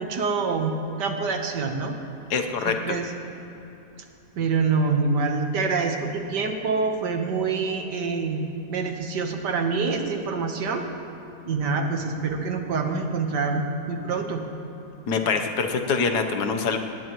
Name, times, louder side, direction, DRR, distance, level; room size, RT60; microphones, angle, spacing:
voice 1, 0.0-1.9 2.6-3.1 4.4-10.9 11.4-14.4, right 4 dB, 85° right, 4 dB, 1.8 m, -26 dB
voice 2, 2.3-3.0 15.1-16.8, left 5 dB, 70° left, 6 dB, 1.5 m, -24 dB
19.5 x 18.0 x 3.1 m, 3.0 s
omnidirectional pair, 1.8 m